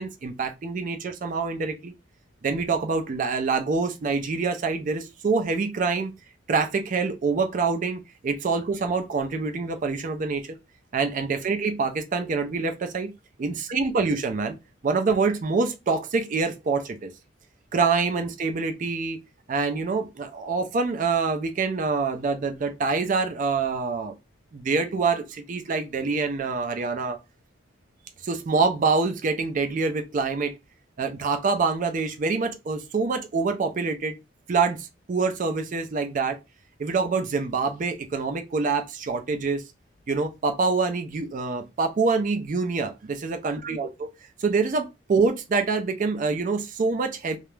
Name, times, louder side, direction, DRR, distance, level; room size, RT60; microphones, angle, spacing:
voice 1, 0.0-1.9 2.4-6.1 6.5-10.5 10.9-13.1 13.4-14.6 14.8-17.1 17.7-19.2 19.5-24.1 24.5-27.2 28.2-30.5 31.0-34.2 34.5-36.4 36.8-39.6 40.1-43.9 44.4-47.4, right 4 dB, 40° right, 0.4 m, -26 dB
2.3 x 2.0 x 3.1 m
head